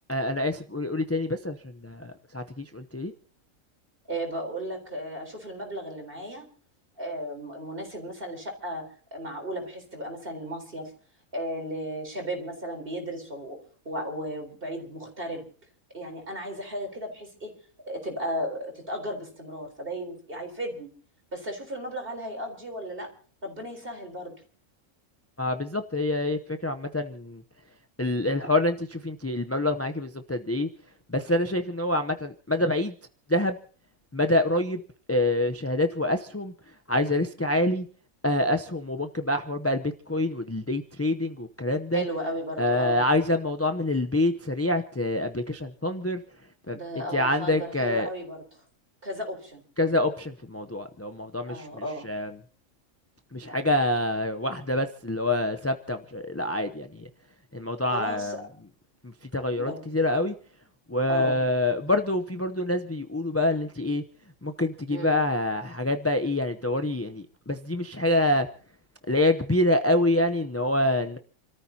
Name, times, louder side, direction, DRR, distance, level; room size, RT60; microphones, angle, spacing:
voice 1, 0.1-3.1 25.4-27.4 28.0-30.7 31.1-32.9 33.3-33.6 34.1-34.8 35.1-37.9 38.2-42.1 42.6-46.2 46.7-46.8 47.1-48.1 49.8-52.3 53.3-57.1 57.5-58.4 59.0-60.3 60.9-64.0 64.4-68.5 69.1-71.2, left 1 dB, 15° left, 6 dB, 0.5 m, -26 dB
voice 2, 4.1-6.5 7.0-8.8 9.1-10.9 11.3-13.6 13.8-15.5 15.9-17.5 17.9-20.9 21.3-23.1 23.4-24.3 41.9-43.0 46.7-48.4 49.0-49.6 51.5-52.1 57.9-58.5 59.5-59.8 61.1-61.4 64.9-65.1, equal, 40° right, 3 dB, 4.3 m, -35 dB
29.5 x 14.0 x 2.8 m, 0.42 s
omnidirectional pair, 1.4 m